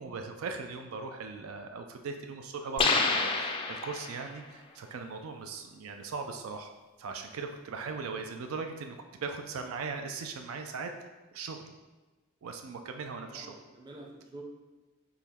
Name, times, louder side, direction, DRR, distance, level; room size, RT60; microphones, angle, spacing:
voice 1, 0.0-6.7 7.0-11.7 12.4-13.6, right 4 dB, 80° right, 5 dB, 0.4 m, -39 dB
sound 1, 2.8-4.3, left 4 dB, 25° left, 0.3 m, -28 dB
voice 2, 13.2-14.4, right 2 dB, 20° right, 0 dB, 0.6 m, -49 dB
3.9 x 3.0 x 4.2 m, 1.2 s
head